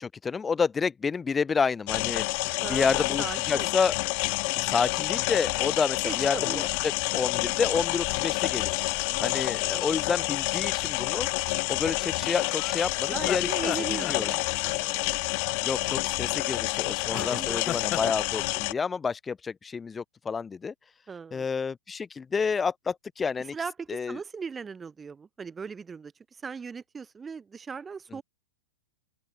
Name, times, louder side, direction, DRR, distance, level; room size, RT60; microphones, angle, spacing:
voice 1, 0.0-4.0 4.5-8.8 9.2-11.3 11.7-13.5 13.8-14.3 15.6-20.7 21.3-23.6 23.9-24.2, left 5 dB, 15° left, 0.7 m, -29 dB
sound 1, 1.9-18.7, left 39 dB, 50° left, 0.3 m, -28 dB
voice 2, 2.6-3.7 6.0-6.7 9.1-10.0 13.1-15.2 17.1-17.6 21.1-21.4 23.5-28.2, right 5 dB, 15° right, 2.7 m, -39 dB
sound 2, 12.0-14.7 17.2-18.1, left 12 dB, 30° left, 2.9 m, -36 dB
open air
hypercardioid pair, 130°, 0 cm